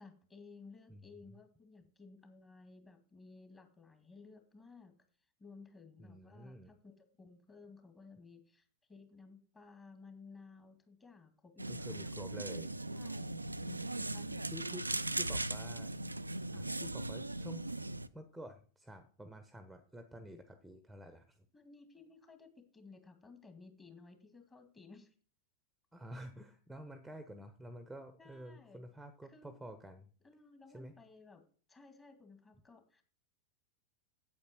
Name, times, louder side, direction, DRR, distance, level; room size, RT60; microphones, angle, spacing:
voice 1, 0.0-5.0 5.4-12.0 12.9-15.1 16.5-16.7 21.5-25.1 28.2-28.9 29.2-29.6 30.2-31.4 31.7-33.0, left 4 dB, 15° left, 7 dB, 2.0 m, -57 dB
voice 2, 0.9-1.3 6.0-6.8 11.7-12.7 14.5-15.9 16.8-17.6 18.1-21.4 25.9-30.1 30.7-30.9, equal, ahead, 9 dB, 1.0 m, -50 dB
sound 1, 11.6-18.1, right 2 dB, 85° right, 0.4 m, -39 dB
8.7 x 8.1 x 6.1 m, 0.42 s
figure-of-eight pair, 90°, 0 cm